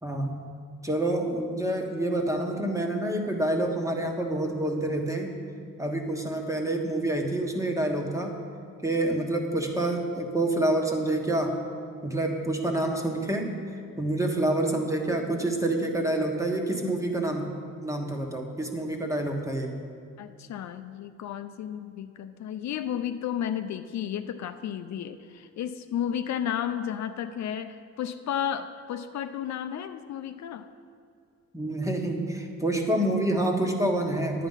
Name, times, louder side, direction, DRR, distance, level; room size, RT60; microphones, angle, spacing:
voice 1, 0.0-0.5 0.8-5.4 5.8-8.4 8.8-11.6 12.0-13.5 14.0-19.8 31.5-34.5, right 1 dB, 10° right, 3 dB, 1.4 m, -27 dB
voice 2, 20.2-30.7, left 9 dB, 65° left, 9 dB, 0.6 m, -33 dB
10.0 x 9.4 x 5.6 m, 2.3 s
cardioid pair, 90°, 30 cm